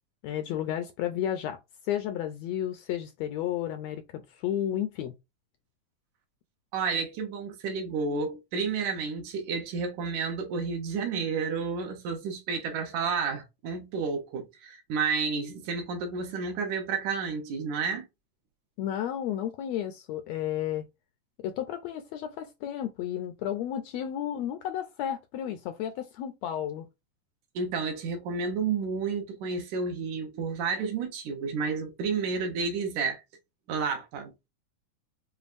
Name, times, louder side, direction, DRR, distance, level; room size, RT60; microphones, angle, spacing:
voice 1, 0.2-1.6 1.8-5.1 18.8-20.9 21.4-26.9, left 11 dB, 80° left, 1.6 m, -32 dB
voice 2, 6.7-18.1 27.6-33.2 33.7-34.3, right 5 dB, 80° right, 2.5 m, -31 dB
7.0 x 2.3 x 2.5 m
omnidirectional pair, 3.4 m